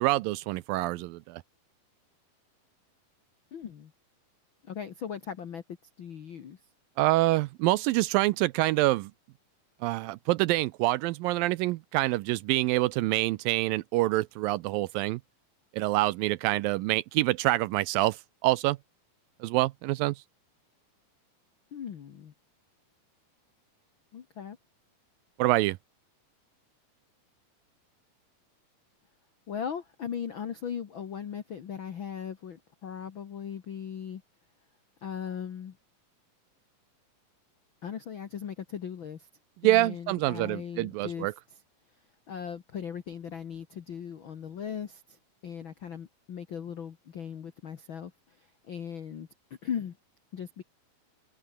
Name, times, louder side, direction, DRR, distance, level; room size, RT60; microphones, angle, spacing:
voice 1, 0.0-1.4 7.0-9.1 9.8-15.2 15.7-18.2 18.4-18.8 19.4-20.2 25.4-25.8 39.6-41.3, right 18 dB, 80° right, 2.2 m, -26 dB
voice 2, 3.5-3.9 4.6-5.6 6.0-6.6 21.7-22.3 24.1-24.6 29.5-34.2 35.0-35.8 37.8-39.3 39.6-41.3 42.3-45.2 45.4-48.1 48.4-49.3 49.6-50.0 50.3-50.6, left 8 dB, 70° left, 1.1 m, -38 dB
omnidirectional pair, 4.3 m